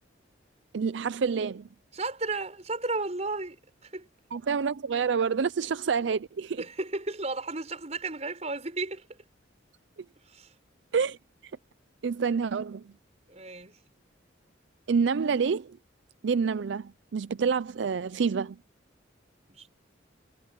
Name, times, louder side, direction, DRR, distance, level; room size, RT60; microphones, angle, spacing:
voice 1, 0.7-1.7 4.3-6.6 10.9-11.2 12.0-12.8 14.9-15.8 16.2-18.6, right 5 dB, 70° right, 0.4 m, -27 dB
voice 2, 1.9-3.6 3.8-4.1 6.6-9.0 10.3-10.5 12.2-12.3 13.3-13.8 19.5-19.7, right 3 dB, 35° right, 5.6 m, -34 dB
head